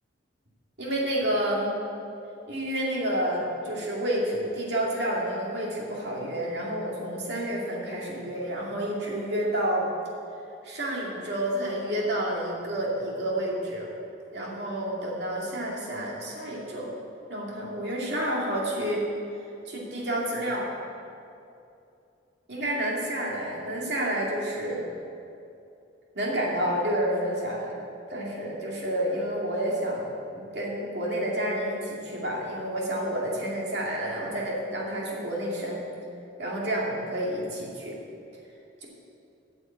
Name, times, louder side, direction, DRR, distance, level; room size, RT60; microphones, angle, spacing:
voice 1, 0.8-1.8 2.5-9.8 10.6-13.9 14.3-16.9 17.3-19.1 19.7-20.7 22.5-24.9 26.1-27.7 28.1-35.9 36.4-38.0, right 1 dB, 60° right, -4 dB, 2.4 m, -29 dB
9.1 x 6.9 x 8.2 m, 2.6 s
head